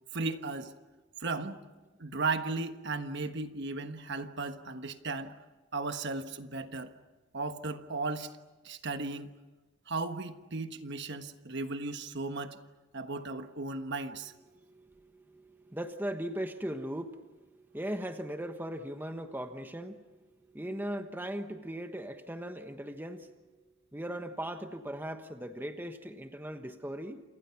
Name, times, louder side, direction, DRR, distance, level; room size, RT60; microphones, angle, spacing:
voice 1, 0.1-0.7 1.2-1.6 2.0-5.3 5.7-6.9 7.3-8.3 8.6-9.3 9.9-12.6 12.9-14.3, right 3 dB, 55° right, 8 dB, 1.3 m, -35 dB
voice 2, 14.5-20.2 20.5-23.4 23.9-27.2, right 1 dB, 10° right, 7 dB, 1.2 m, -39 dB
29.5 x 28.0 x 5.9 m, 1.2 s
head